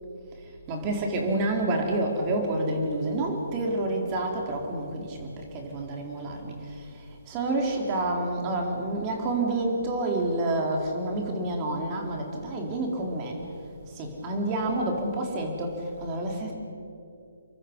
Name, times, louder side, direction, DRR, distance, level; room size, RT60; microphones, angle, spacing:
voice 1, 0.7-13.4 13.9-16.5, right 2 dB, 25° right, 1 dB, 4.2 m, -29 dB
28.5 x 23.5 x 5.5 m, 2.6 s
figure-of-eight pair, 140°, 0 cm